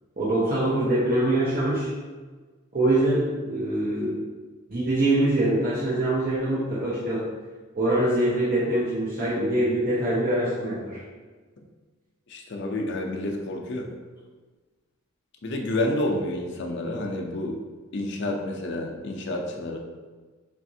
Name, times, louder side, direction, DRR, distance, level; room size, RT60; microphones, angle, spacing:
voice 1, 0.2-1.9 2.7-4.2 4.7-7.3 7.7-11.0, right 1 dB, 40° right, -8 dB, 0.7 m, -24 dB
voice 2, 12.3-13.9 15.4-17.6 17.9-19.8, left 1 dB, 50° left, 1 dB, 0.5 m, -29 dB
5.8 x 2.5 x 2.7 m, 1.3 s
head